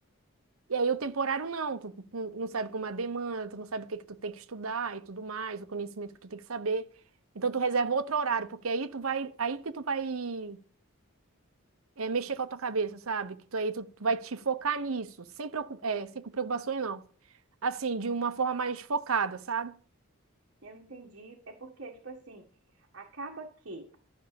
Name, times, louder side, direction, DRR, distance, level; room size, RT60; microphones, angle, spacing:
voice 1, 0.7-6.9 7.3-10.6 12.0-17.0 17.6-19.8, right 5 dB, 75° right, 0.9 m, -32 dB
voice 2, 20.6-22.5 22.7-24.0, right 3 dB, 55° right, 1.7 m, -45 dB
12.5 x 6.2 x 7.0 m
head